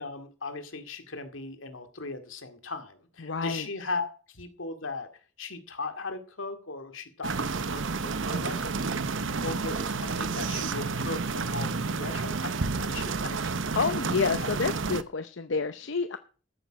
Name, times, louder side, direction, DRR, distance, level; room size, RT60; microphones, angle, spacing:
voice 1, 0.0-5.1 5.4-13.6, left 3 dB, 90° left, 7 dB, 2.2 m, -38 dB
voice 2, 3.2-3.7 13.7-16.2, left 4 dB, 70° left, 10 dB, 0.7 m, -29 dB
sound 1, 7.2-15.0, right 4 dB, 80° right, 0.8 m, -30 dB
14.0 x 8.9 x 6.2 m, 0.39 s
head